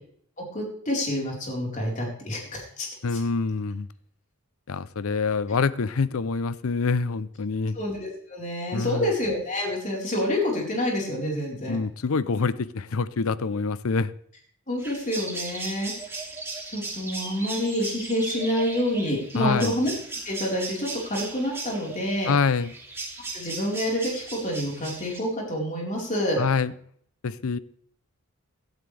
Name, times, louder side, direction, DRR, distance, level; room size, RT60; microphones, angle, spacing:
voice 1, 0.5-3.2 7.7-11.8 14.7-15.9 16.7-19.9 20.2-22.3 23.3-26.4, left 1 dB, 35° left, 4.2 m, -28 dB
voice 2, 3.0-3.9 4.7-7.8 8.7-9.1 11.7-14.1 19.4-19.7 22.3-22.7 26.4-26.7 27.2-27.6, left 4 dB, 70° left, 0.6 m, -26 dB
sound 1, 14.8-25.2, right 3 dB, 10° right, 2.6 m, -37 dB
16.5 x 12.0 x 3.3 m
head